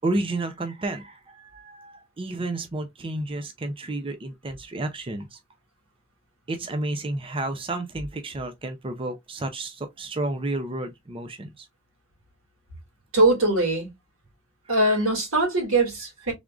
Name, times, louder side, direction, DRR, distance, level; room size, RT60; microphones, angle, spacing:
voice 1, 0.0-5.4 6.5-11.7 14.7-14.8, right 2 dB, 25° right, 0.5 m, -31 dB
voice 2, 13.1-13.9 14.7-16.3, right 2 dB, 80° right, 2.4 m, -21 dB
3.6 x 3.5 x 2.4 m
head